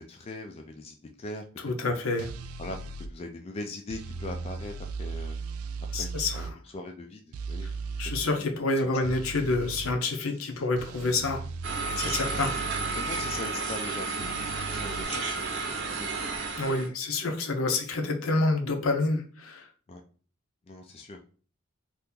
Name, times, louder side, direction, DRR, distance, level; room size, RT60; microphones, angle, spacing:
voice 1, 0.0-1.4 1.9-2.0 2.6-4.7 5.0-5.4 6.0-6.5 6.7-7.2 7.5-7.7 12.0-12.5 13.0-15.6 16.0-16.1 19.9-20.0 20.7-21.2, left 2 dB, 30° left, 3 dB, 0.3 m, -40 dB
voice 2, 1.6-2.3 5.9-6.5 7.6-7.7 8.0-11.4 12.0-12.5 16.6-19.7, left 2 dB, 70° left, 4 dB, 0.6 m, -28 dB
sound 1, 2.2-3.1 3.9-6.5 7.3-8.2 9.0-10.0 10.8-13.4 14.2-15.0, right 4 dB, 90° right, 0.3 m, -37 dB
sound 2, 11.6-16.9, right 4 dB, 60° right, 0.8 m, -32 dB
2.8 x 2.5 x 3.6 m, 0.40 s
head